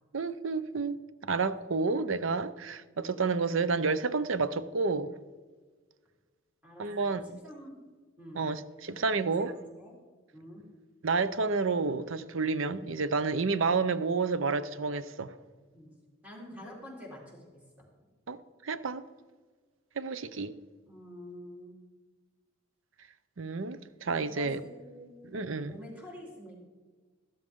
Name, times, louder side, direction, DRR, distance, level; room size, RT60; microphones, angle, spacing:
voice 1, 0.1-5.1 6.8-7.4 8.3-9.5 11.0-15.4 18.3-19.0 20.0-20.5 23.4-24.6 25.2-25.8, right 4 dB, 75° right, 0.7 m, -30 dB
voice 2, 6.6-7.8 8.2-8.5 8.9-10.0 10.3-10.7 15.7-15.9 16.2-17.5 20.9-21.8 24.2-26.6, equal, 10° right, 3.7 m, -48 dB
14.5 x 13.0 x 3.7 m
head